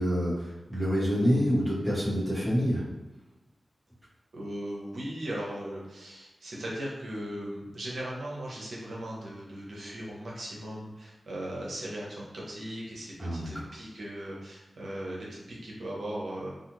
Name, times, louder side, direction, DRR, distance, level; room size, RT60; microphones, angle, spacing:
voice 1, 0.0-2.8 13.2-13.6, equal, 15° left, -8 dB, 1.3 m, -27 dB
voice 2, 4.3-16.5, right 1 dB, 75° right, -4 dB, 0.8 m, -38 dB
2.4 x 2.4 x 3.0 m, 1.1 s
cardioid pair, 60°, 0 cm